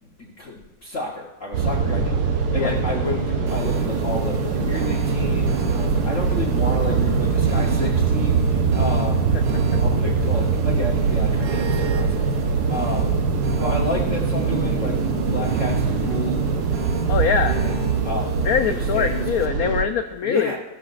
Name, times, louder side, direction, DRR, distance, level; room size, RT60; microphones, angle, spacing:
voice 1, 0.0-9.4 9.8-12.3 12.7-13.2 13.6-16.4 17.5-17.8 18.0-18.3 18.7-19.2 20.2-20.6, left 2 dB, 45° left, -3 dB, 1.3 m, -31 dB
sound 1, 1.5-19.8, right 5 dB, 60° right, 1.4 m, -22 dB
sound 2, 3.5-19.5, right 4 dB, 85° right, 1.8 m, -34 dB
voice 2, 17.1-17.5 18.4-20.5, left 7 dB, 85° left, 8 dB, 0.7 m, -23 dB
16.0 x 13.0 x 2.5 m, 1.0 s
omnidirectional pair, 2.1 m